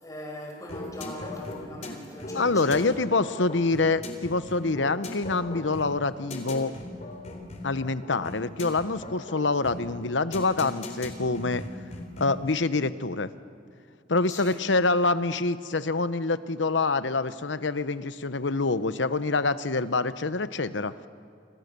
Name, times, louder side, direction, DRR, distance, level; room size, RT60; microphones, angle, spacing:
voice 1, 0.0-3.0 14.3-14.6, left 1 dB, 20° left, 0 dB, 5.7 m, -40 dB
sound 1, 0.7-12.5, left 2 dB, 40° left, 3.6 m, -39 dB
voice 2, 2.3-6.7 7.6-11.6 12.2-13.3 14.1-20.9, left 3 dB, 90° left, 13 dB, 1.0 m, -26 dB
29.5 x 27.5 x 6.9 m, 2.4 s
head